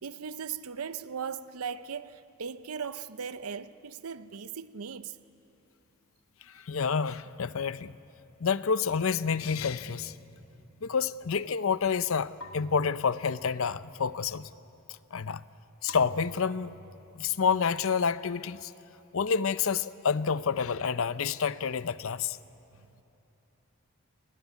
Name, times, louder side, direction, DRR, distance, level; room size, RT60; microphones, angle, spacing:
voice 1, 0.0-5.2, right 6 dB, 80° right, 0.7 m, -38 dB
voice 2, 6.4-8.0 8.4-10.1 10.8-14.5 15.1-15.4 15.8-16.8 17.2-18.7 19.1-22.4, left 6 dB, 65° left, 0.6 m, -29 dB
sound 1, 8.4-14.5, equal, 5° right, 7.4 m, -54 dB
sound 2, 10.0-10.6 12.4-13.7 15.9-16.9, equal, 80° left, 1.9 m, -49 dB
29.0 x 21.0 x 8.2 m
head